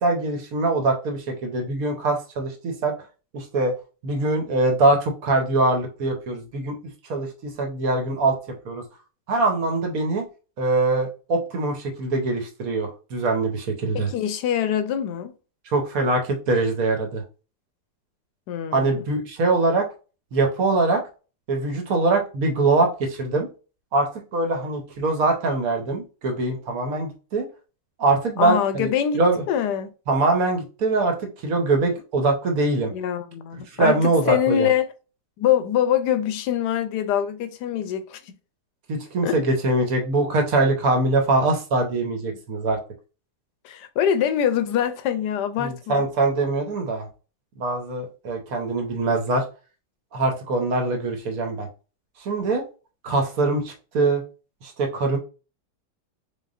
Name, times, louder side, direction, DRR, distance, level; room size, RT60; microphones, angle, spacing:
voice 1, 0.0-2.9 3.3-3.7 4.0-6.8 7.1-8.4 8.6-8.8 9.3-10.3 10.6-14.1 15.7-17.2 18.7-19.9 20.3-21.0 21.5-23.5 23.9-27.5 28.0-29.4 30.1-31.2 31.4-32.9 33.7-34.7 38.9-42.8 45.6-47.1 47.6-49.4 50.1-51.7 52.2-52.6 53.0-54.2 54.6-55.2, right 2 dB, 60° right, 1.2 m, -23 dB
voice 2, 13.9-15.3 18.5-19.0 28.4-29.2 29.5-29.9 32.9-34.9 35.4-38.3 39.2-39.4 43.6-46.0, left 9 dB, 75° left, 1.2 m, -24 dB
4.1 x 3.6 x 2.5 m
omnidirectional pair, 1.9 m